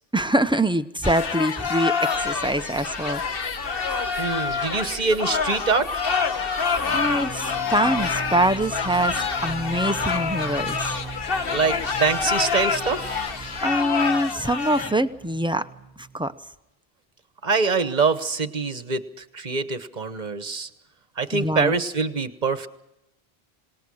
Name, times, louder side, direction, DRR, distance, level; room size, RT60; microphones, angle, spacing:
voice 1, 0.1-3.2 6.9-10.9 13.6-15.7 16.0-16.3 21.3-21.8, right 1 dB, 5° right, 9 dB, 0.7 m, -24 dB
sound 1, 1.0-14.9, left 5 dB, 65° left, 1.3 m, -27 dB
sound 2, 2.1-13.6, equal, 40° left, 3.1 m, -41 dB
voice 2, 4.2-6.1 11.5-13.2 17.4-20.7 21.2-22.7, right 4 dB, 45° right, 11 dB, 1.3 m, -24 dB
sound 3, 6.8-16.4, right 4 dB, 15° left, 4.9 m, -40 dB
27.0 x 19.5 x 6.4 m, 0.87 s
omnidirectional pair, 1.0 m